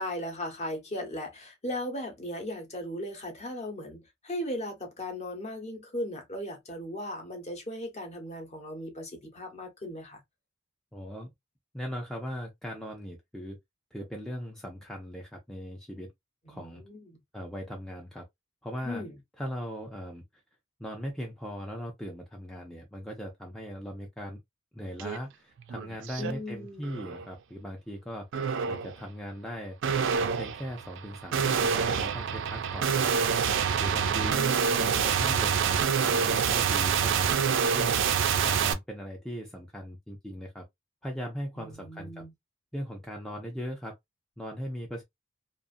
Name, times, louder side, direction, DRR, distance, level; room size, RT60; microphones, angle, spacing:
voice 1, 0.0-10.2 16.4-17.2 18.8-19.2 26.2-26.9 34.0-35.3 41.6-42.3, left 1 dB, 35° left, 0.9 m, -37 dB
voice 2, 10.9-11.3 11.7-13.6 13.9-16.1 16.5-16.8 17.3-18.3 18.6-19.0 19.4-20.2 20.8-24.4 24.7-28.3 28.7-29.8 30.2-33.3 33.8-34.5 34.8-38.0 38.4-40.6 41.0-42.2 42.7-44.0 44.4-45.0, equal, 5° left, 0.4 m, -39 dB
sound 1, 25.0-25.2 25.6-26.3 26.8-27.3 28.3-28.9 29.8-38.7, right 7 dB, 65° right, 0.4 m, -27 dB
2.4 x 2.4 x 2.5 m
head